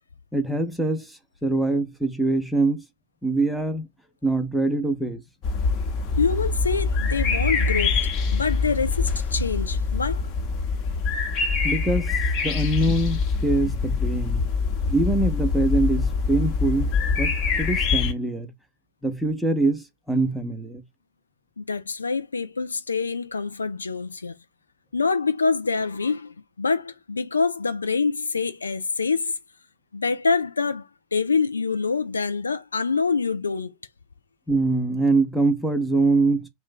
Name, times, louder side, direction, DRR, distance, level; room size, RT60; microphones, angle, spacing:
voice 1, 0.3-1.1 1.4-2.8 3.2-3.9 4.2-5.2 11.6-14.4 14.9-16.9 17.2-18.5 19.0-20.8 34.5-36.5, right 2 dB, ahead, 0.7 m, -24 dB
sound 1, 5.4-18.1, left 4 dB, 35° left, 1.0 m, -24 dB
voice 2, 6.2-10.3 21.6-24.3 24.9-29.3 29.9-33.7, left 4 dB, 75° left, 0.3 m, -26 dB
2.5 x 2.1 x 3.6 m
figure-of-eight pair, 90°, 0 cm